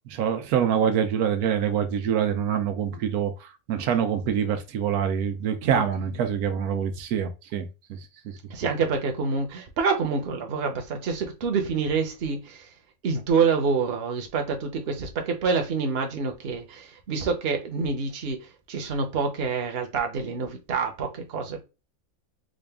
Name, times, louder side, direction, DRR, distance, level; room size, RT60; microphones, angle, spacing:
voice 1, 0.1-8.0, right 8 dB, 90° right, 1.2 m, -25 dB
voice 2, 8.5-12.6 13.0-18.4 18.7-21.6, right 5 dB, 50° right, 1.0 m, -27 dB
3.8 x 2.4 x 3.4 m
omnidirectional pair, 1.5 m